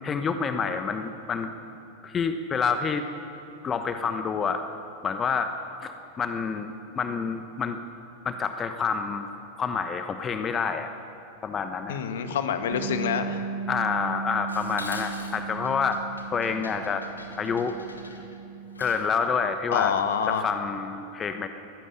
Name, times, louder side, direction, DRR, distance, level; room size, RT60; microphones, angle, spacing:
voice 1, 0.0-1.6 2.0-3.1 3.6-4.6 5.0-5.5 5.8-7.8 8.2-9.3 9.6-10.9 11.4-12.0 13.7-16.0 16.3-17.0 17.4-17.8 18.8-19.9 20.3-21.5, left 5 dB, 25° left, 8 dB, 1.1 m, -28 dB
voice 2, 11.9-13.5 19.7-20.5, left 7 dB, 60° left, 8 dB, 1.8 m, -27 dB
Bass guitar, 12.7-19.0, right 5 dB, 50° right, 1.7 m, -36 dB
Dishes pots and pans, 14.5-19.2, left 2 dB, 80° left, 2.2 m, -43 dB
22.5 x 15.0 x 8.7 m, 2.9 s
figure-of-eight pair, 90°, 0 cm